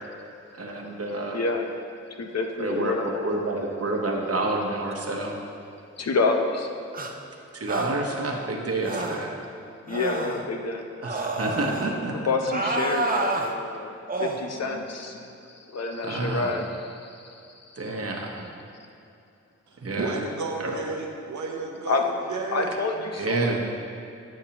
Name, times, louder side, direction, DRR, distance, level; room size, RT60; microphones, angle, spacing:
voice 1, 0.5-1.4 2.6-5.3 7.5-9.3 11.0-12.1 16.0-16.5 17.8-18.5 19.8-20.2 20.6-20.7 23.1-23.6, right 2 dB, 55° right, 0 dB, 1.0 m, -28 dB
voice 2, 1.3-1.7 2.2-3.2 6.0-6.7 9.9-10.9 12.1-13.9 14.2-15.3 15.7-16.7 17.0-17.1 21.9-22.0 22.5-23.6, left 3 dB, 60° left, 3 dB, 0.7 m, -27 dB
sound 1, 6.9-7.1 7.7-8.0 8.8-9.3 9.9-10.4 11.0-11.9 12.5-13.5 14.1-14.4, right 3 dB, 30° right, 0.6 m, -29 dB
voice 3, 19.7-22.7, right 3 dB, 85° right, 2 dB, 0.8 m, -32 dB
8.3 x 6.4 x 2.9 m, 2.6 s
cardioid pair, 60°, 29 cm